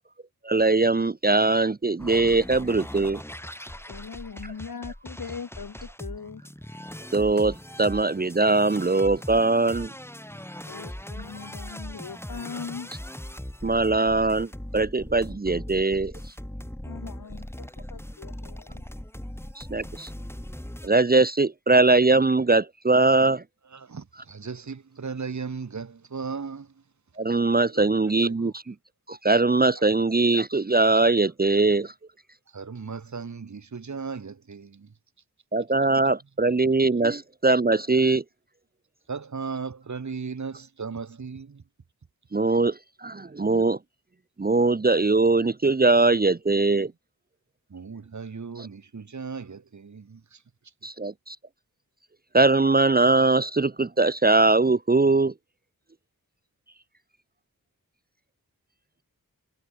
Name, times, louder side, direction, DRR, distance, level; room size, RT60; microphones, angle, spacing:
voice 1, 0.4-3.2 7.1-9.9 13.6-16.1 19.6-20.1 20.8-23.4 27.2-28.7 29.1-31.9 35.5-38.2 42.3-43.8 44.4-46.9 48.6-48.7 50.8-51.4 52.3-55.3, right 3 dB, 25° right, 0.8 m, -21 dB
sound 1, 2.0-20.9, equal, 5° left, 5.8 m, -40 dB
voice 2, 3.9-6.4 10.7-12.9 16.8-18.8, left 6 dB, 65° left, 2.0 m, -40 dB
voice 3, 23.6-26.7 27.7-28.7 29.7-29.9 32.5-34.9 39.1-41.6 47.7-50.4, right 5 dB, 50° right, 1.6 m, -37 dB
wide cardioid pair, 65°, 37 cm